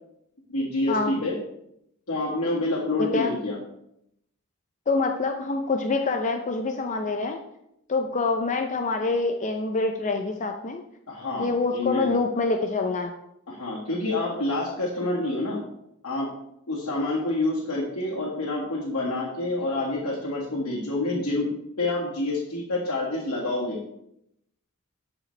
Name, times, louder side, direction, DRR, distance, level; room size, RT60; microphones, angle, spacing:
voice 1, 0.5-1.3 2.1-3.6 11.1-12.1 13.5-15.6 16.0-16.3 16.7-21.5 21.8-23.8, left 2 dB, 85° left, -7 dB, 1.9 m, -27 dB
voice 2, 4.9-7.4 7.9-10.8 11.4-13.1, left 3 dB, 35° left, 5 dB, 0.5 m, -26 dB
12.5 x 5.0 x 3.3 m, 0.78 s
head